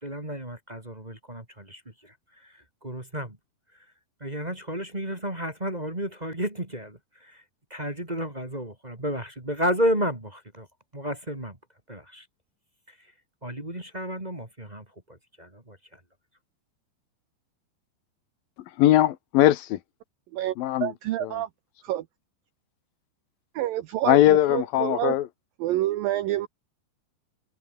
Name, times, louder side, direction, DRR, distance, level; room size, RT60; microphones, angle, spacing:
voice 1, 0.0-3.4 4.2-7.4 7.7-10.7 10.9-11.6 11.9-12.3 12.9-13.1 13.4-16.0, equal, 10° right, 2.0 m, -32 dB
voice 2, 18.8-19.8 20.6-20.9 21.2-21.3 24.1-25.3, left 14 dB, 70° left, 2.3 m, -20 dB
voice 3, 20.3-21.5 21.8-22.0 23.6-25.2 25.6-26.5, right 14 dB, 85° right, 2.0 m, -28 dB
omnidirectional pair, 5.3 m